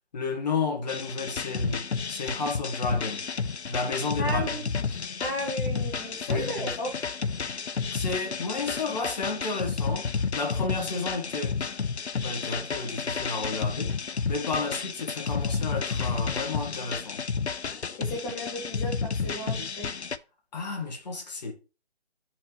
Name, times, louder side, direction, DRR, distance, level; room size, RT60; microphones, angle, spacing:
voice 1, 0.1-1.8 2.1-3.2 3.7-4.5 6.3-6.7 7.9-11.7 12.2-17.2 20.5-21.5, left 3 dB, 40° left, 1.7 m, -32 dB
sound 1, 0.9-20.2, left 5 dB, 80° left, 0.6 m, -31 dB
voice 2, 4.2-4.6 4.9-6.9 8.8-8.9 18.0-19.9, equal, 5° left, 0.8 m, -34 dB
8.9 x 4.5 x 3.1 m
figure-of-eight pair, 145°, 32 cm